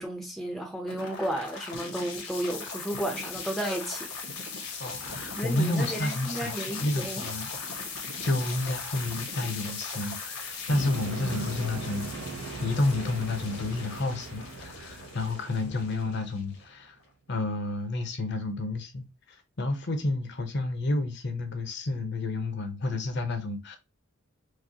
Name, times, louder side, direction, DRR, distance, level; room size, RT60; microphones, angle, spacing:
voice 1, 0.0-4.1 5.3-7.3, right 1 dB, ahead, 0.6 m, -33 dB
sound 1, 0.9-16.9, left 4 dB, 80° left, 1.3 m, -39 dB
voice 2, 4.8-7.9 8.2-12.3 12.6-17.0 17.3-19.1 19.6-23.8, left 2 dB, 55° left, 0.8 m, -30 dB
sound 2, 10.7-16.5, right 3 dB, 70° right, 0.6 m, -39 dB
4.8 x 2.1 x 2.7 m
head